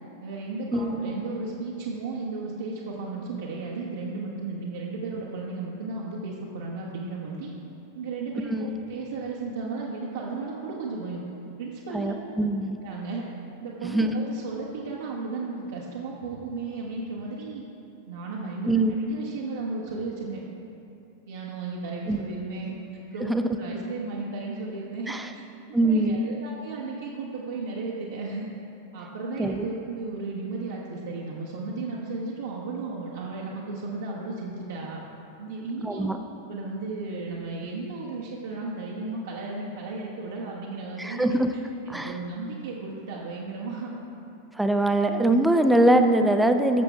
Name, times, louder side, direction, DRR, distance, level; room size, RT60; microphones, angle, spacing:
voice 1, 0.2-7.5 7.9-11.2 11.6-12.5 12.8-13.2 13.6-17.6 18.1-20.4 21.3-22.7 23.1-25.4 25.7-28.5 28.9-35.0 35.4-36.1 36.5-41.2 41.9-44.0, right 3 dB, 65° right, -5 dB, 1.2 m, -34 dB
voice 2, 8.5-8.8 11.9-12.8 13.8-14.2 18.7-19.0 22.1-22.2 23.2-23.5 25.1-25.3 25.7-26.2 29.4-29.7 35.8-36.2 41.0-41.5 41.9-42.2 44.6-46.8, right 1 dB, 5° right, 6 dB, 0.6 m, -23 dB
16.0 x 7.0 x 3.5 m, 2.9 s
figure-of-eight pair, 90°, 0 cm